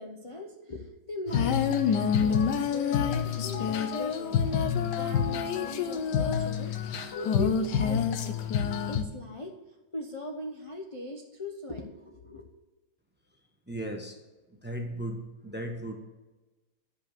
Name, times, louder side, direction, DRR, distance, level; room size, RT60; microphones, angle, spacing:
voice 1, 0.0-4.7 5.0-8.3 8.9-9.5 9.9-12.4, left 1 dB, 40° left, 1 dB, 0.4 m, -40 dB
Female singing, 1.3-9.0, left 7 dB, 65° left, 1.3 m, -27 dB
voice 2, 13.7-14.2 14.6-15.9, right 1 dB, 10° right, 2 dB, 0.8 m, -36 dB
11.0 x 5.7 x 6.7 m, 1.1 s
omnidirectional pair, 2.2 m